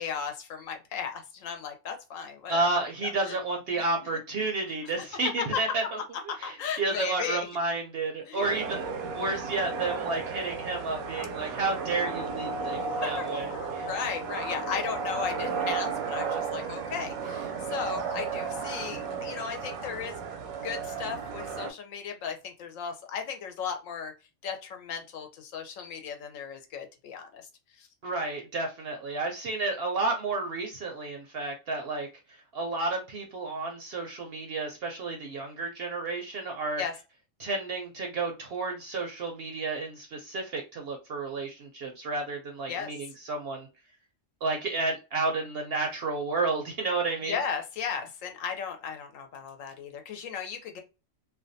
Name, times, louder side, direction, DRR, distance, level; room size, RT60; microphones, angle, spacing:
voice 1, 0.0-2.7 3.0-3.4 3.7-3.8 4.7-4.9 5.4-5.5 6.4-7.5 8.2-8.5 11.4-11.6 12.8-20.2 20.6-24.1 24.4-27.4 27.7-27.9 36.8-36.9 42.7-42.9 47.2-50.8, left 7 dB, 75° left, 1.0 m, -36 dB
voice 2, 2.5-6.0 6.4-13.9 28.0-32.1 32.5-36.8 37.4-43.7 44.4-47.4, right 3 dB, 65° right, 0.6 m, -31 dB
sound 1, 8.4-21.7, right 5 dB, 90° right, 1.0 m, -34 dB
2.5 x 2.2 x 2.5 m
omnidirectional pair, 1.4 m